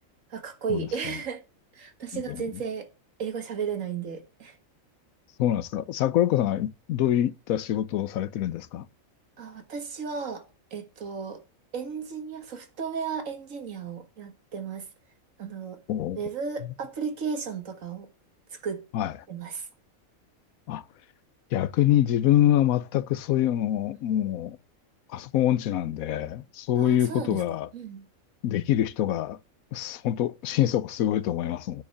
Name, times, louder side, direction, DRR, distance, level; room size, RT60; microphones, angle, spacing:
voice 1, 0.3-1.4 1.8-2.9 3.2-4.6 9.4-10.4 10.7-11.4 11.7-14.9 15.4-15.8 16.2-18.1 18.5-18.8 19.3-19.7 26.8-27.4 27.7-28.1, right 6 dB, 70° right, 1.8 m, -34 dB
voice 2, 2.1-2.4 5.4-8.9 15.9-16.2 16.6-16.7 18.9-19.1 20.7-20.8 21.5-24.6 25.1-27.7 28.4-29.4 29.7-31.8, left 12 dB, 85° left, 1.1 m, -25 dB
9.4 x 5.0 x 6.7 m
omnidirectional pair, 1.4 m